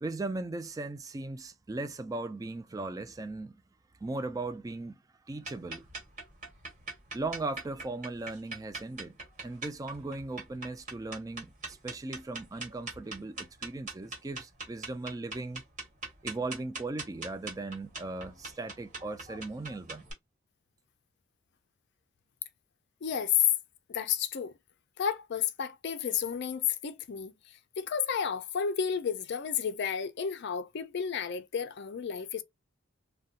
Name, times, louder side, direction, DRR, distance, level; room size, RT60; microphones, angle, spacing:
voice 1, 0.0-3.5 4.0-5.0 5.3-5.9 7.1-9.2 9.4-15.6 16.2-20.0, right 2 dB, 15° right, 0.3 m, -38 dB
sound 1, 5.4-20.1, right 3 dB, 35° right, 1.3 m, -43 dB
voice 2, 23.0-23.4 23.9-24.5 25.0-32.4, left 7 dB, 55° left, 0.4 m, -32 dB
3.9 x 2.2 x 2.4 m
head